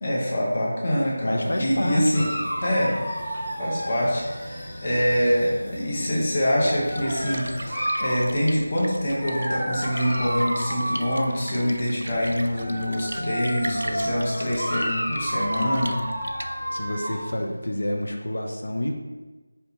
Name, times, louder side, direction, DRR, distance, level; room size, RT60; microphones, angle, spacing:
voice 1, 0.0-2.3 2.6-3.0 3.6-16.0, equal, 15° left, -6 dB, 0.6 m, -25 dB
voice 2, 1.2-2.3 16.7-19.0, left 1 dB, 60° left, 1 dB, 0.5 m, -28 dB
sound 1, 1.4-7.7, equal, 85° left, 1.2 m, -41 dB
Dog, 2.1-5.5 6.3-8.3 9.1-11.7 12.4-17.3, equal, ahead, 1.1 m, -31 dB
Splash splatter, 6.4-17.0, right 1 dB, 75° right, 0.4 m, -39 dB
5.3 x 2.8 x 2.6 m, 1.2 s
figure-of-eight pair, 180°, 0 cm